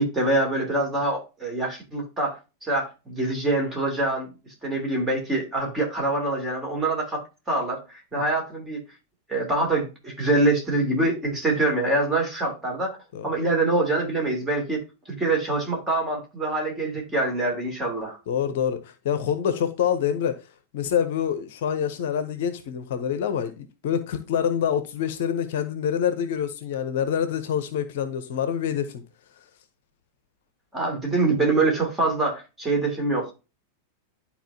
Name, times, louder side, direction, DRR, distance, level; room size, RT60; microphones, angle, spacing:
voice 1, 0.0-4.3 4.6-7.2 7.5-8.8 9.3-13.0 13.2-14.8 15.2-18.2 30.7-33.3, right 2 dB, 15° right, 2.9 m, -25 dB
voice 2, 18.3-20.4 20.7-29.0, left 8 dB, 55° left, 0.8 m, -26 dB
11.5 x 4.3 x 2.8 m
figure-of-eight pair, 90°, 0 cm